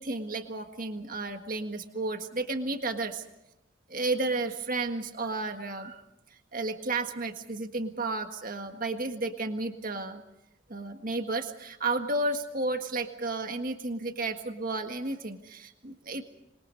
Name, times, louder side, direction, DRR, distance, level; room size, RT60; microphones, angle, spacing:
voice 1, 0.0-3.2 3.9-6.0 6.5-10.2 10.7-16.2, right 2 dB, 40° right, 6 dB, 1.7 m, -32 dB
27.0 x 22.0 x 5.4 m, 0.88 s
head